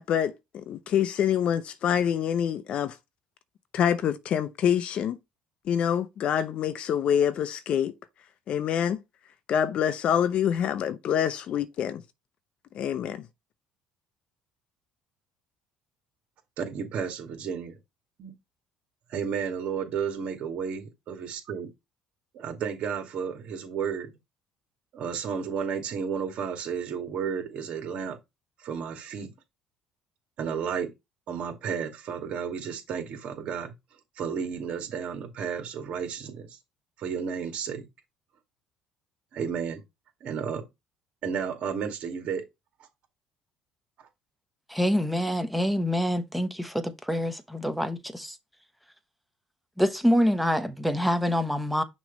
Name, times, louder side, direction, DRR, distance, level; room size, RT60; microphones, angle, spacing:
voice 1, 0.0-3.0 3.7-5.2 5.7-7.9 8.5-9.0 9.5-12.0 12.7-13.3, left 9 dB, 55° left, 0.7 m, -26 dB
voice 2, 16.6-17.8 18.2-18.3 19.1-21.7 22.3-24.1 24.9-28.2 28.6-29.3 30.4-30.9 31.3-33.7 34.2-36.5 37.0-37.8 39.3-39.8 40.2-40.6 41.2-42.5, right 7 dB, 60° right, 2.2 m, -32 dB
voice 3, 44.7-48.3 49.8-51.8, equal, ahead, 1.0 m, -26 dB
6.2 x 3.2 x 5.2 m
cardioid pair, 100°, 2 cm